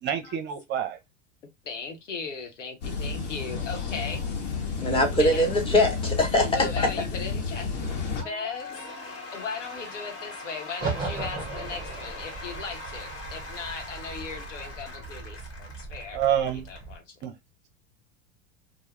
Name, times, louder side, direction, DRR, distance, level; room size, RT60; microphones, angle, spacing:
voice 1, 0.0-1.0 16.1-16.6 17.2-17.3, right 9 dB, 30° right, 0.6 m, -27 dB
voice 2, 1.6-4.4 5.1-5.5 6.3-7.7 8.0-8.8 9.3-16.2 16.7-17.0, left 5 dB, 90° left, 0.8 m, -37 dB
sound 1, 2.8-8.2, left 5 dB, 65° left, 1.0 m, -31 dB
voice 3, 4.8-6.9, left 1 dB, 15° left, 0.8 m, -22 dB
Cheering / Applause / Crowd, 8.2-16.8, left 2 dB, 45° left, 1.2 m, -41 dB
sound 2, 10.8-17.0, right 4 dB, 15° right, 1.1 m, -37 dB
2.2 x 2.0 x 2.9 m
hypercardioid pair, 100°, 36 cm